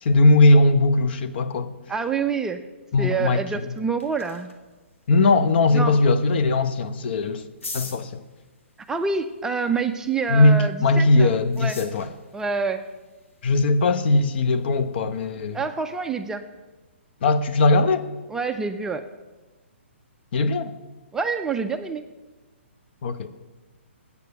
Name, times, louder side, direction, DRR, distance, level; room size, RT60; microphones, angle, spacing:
voice 1, 0.0-1.7 2.9-3.7 5.1-7.5 7.7-8.2 10.3-12.1 13.4-15.6 17.2-18.1 20.3-20.7 23.0-23.3, left 2 dB, 55° left, 0.8 m, -19 dB
voice 2, 1.9-2.6 3.0-4.5 5.7-6.0 8.9-11.3 11.6-11.8 12.3-12.8 15.5-16.4 18.3-19.0 21.1-22.0, right 5 dB, 10° right, 0.4 m, -27 dB
sound 1, 3.5-16.1, left 3 dB, 90° left, 1.6 m, -47 dB
8.2 x 6.6 x 8.0 m
hypercardioid pair, 145°, 7 cm